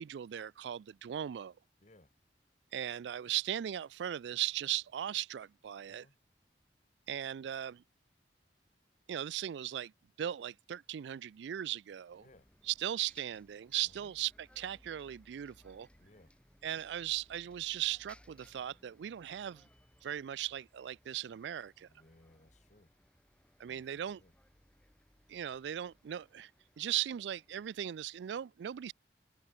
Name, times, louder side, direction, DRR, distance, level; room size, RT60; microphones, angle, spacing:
voice 1, 0.0-1.5 2.7-6.1 7.1-7.8 9.1-9.9 10.2-12.3 12.7-15.9 16.6-19.7 20.0-21.9 23.6-24.2 25.3-26.5 26.8-28.9, right 11 dB, 80° right, 0.3 m, -38 dB
voice 2, 1.8-2.1 5.9-6.2 12.2-12.5 13.8-14.1 16.0-16.3 21.9-22.9 23.6-24.3, left 1 dB, 40° left, 1.9 m, -63 dB
Bus, 12.1-27.9, left 1 dB, 5° left, 1.8 m, -65 dB
open air
head